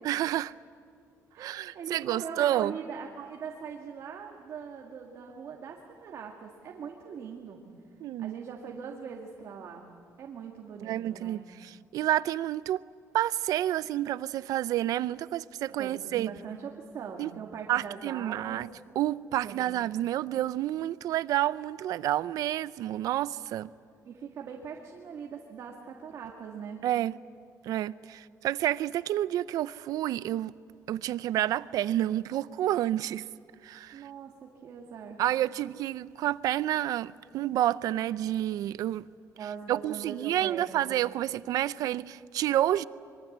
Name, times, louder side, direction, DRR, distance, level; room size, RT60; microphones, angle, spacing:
voice 1, 0.0-0.5 1.4-2.8 8.0-8.3 10.8-12.8 13.1-16.3 17.2-17.3 17.7-18.7 19.0-23.7 26.8-27.1 27.6-30.5 30.9-33.3 33.6-34.1 35.2-39.1 39.7-42.8, right 13 dB, 75° right, 0.5 m, -29 dB
voice 2, 1.3-7.6 8.2-9.8 10.2-11.4 15.8-18.6 19.4-19.8 24.0-26.8 33.9-35.2 39.4-41.0, right 6 dB, 55° right, 2.1 m, -41 dB
25.5 x 23.0 x 8.0 m
cardioid pair, 175°, 6 cm